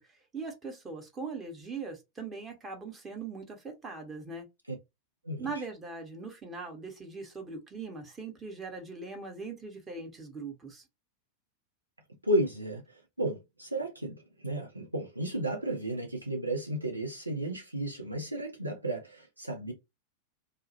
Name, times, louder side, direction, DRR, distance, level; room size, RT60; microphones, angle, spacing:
voice 1, 0.3-4.5 5.4-10.8, right 4 dB, 20° right, 0.8 m, -40 dB
voice 2, 12.2-12.8 13.2-19.7, right 1 dB, 85° right, 0.5 m, -33 dB
2.3 x 2.0 x 2.7 m
figure-of-eight pair, 90°, 0 cm